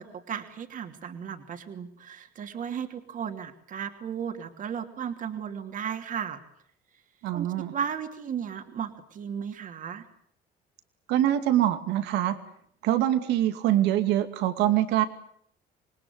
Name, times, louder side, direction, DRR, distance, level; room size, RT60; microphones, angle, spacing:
voice 1, 0.0-6.4 7.3-10.0, right 8 dB, 50° right, 6 dB, 2.9 m, -35 dB
voice 2, 7.2-7.7 11.1-12.4 12.8-15.0, right 12 dB, 90° right, 10 dB, 2.5 m, -24 dB
27.0 x 20.5 x 9.7 m, 0.66 s
cardioid pair, 110°, 17 cm